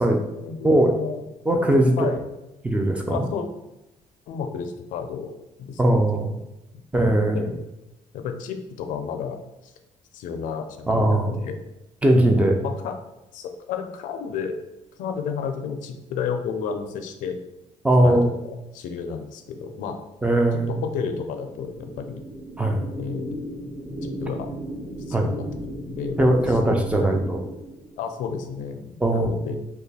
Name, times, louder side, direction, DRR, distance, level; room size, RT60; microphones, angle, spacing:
voice 1, 0.9-1.2 2.0-2.2 3.1-3.5 4.3-5.3 5.6-6.3 6.7-7.6 8.1-9.4 9.6-9.7 10.1-11.6 12.1-13.0 13.3-14.6 15.0-17.4 17.9-20.0 20.7-22.2 22.9-23.4 24.0-24.5 25.1-26.2 26.5-26.6 27.0-27.4 28.0-29.6, left 6 dB, 80° left, 7 dB, 0.4 m, -32 dB
voice 2, 1.5-1.9 2.6-3.2 5.8-6.3 6.9-7.4 10.9-11.3 12.0-12.6 17.8-18.3 20.2-20.7 22.6-22.8 25.1-25.3 26.2-27.4 29.0-29.5, right 1 dB, 10° right, 2 dB, 0.4 m, -19 dB
sound 1, 19.5-28.2, right 1 dB, 55° right, 1.4 m, -37 dB
2.9 x 2.2 x 4.1 m, 0.95 s
cardioid pair, 125°, 13 cm